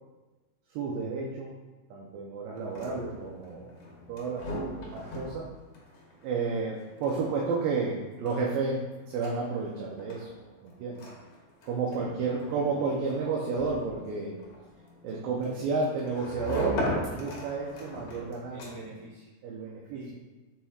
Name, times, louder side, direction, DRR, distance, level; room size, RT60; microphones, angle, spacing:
voice 1, 0.7-1.6 1.9-3.7 4.1-5.5 6.2-10.3 10.6-11.0 11.6-14.3 15.0-18.6 19.4-20.0, right 4 dB, 75° right, -3 dB, 2.3 m, -31 dB
sound 1, 2.5-19.1, equal, 60° left, 1.6 m, -40 dB
voice 2, 11.9-12.6 15.1-15.3 18.5-19.3 19.9-20.1, right 1 dB, 50° right, -6 dB, 2.7 m, -47 dB
7.2 x 5.7 x 2.4 m, 1.2 s
omnidirectional pair, 4.3 m